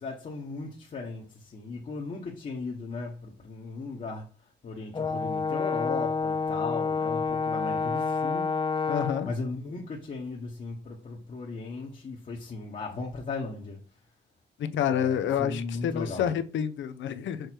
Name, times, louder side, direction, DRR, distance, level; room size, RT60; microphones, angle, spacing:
voice 1, 0.0-4.3 4.6-8.9 9.2-13.8 14.8-16.3, left 3 dB, 40° left, 1.3 m, -37 dB
Brass instrument, 4.9-9.3, left 4 dB, 25° left, 0.6 m, -28 dB
voice 2, 8.9-9.3 14.6-17.5, left 9 dB, 70° left, 0.7 m, -28 dB
6.4 x 3.2 x 4.5 m
cardioid pair, 90°, 20 cm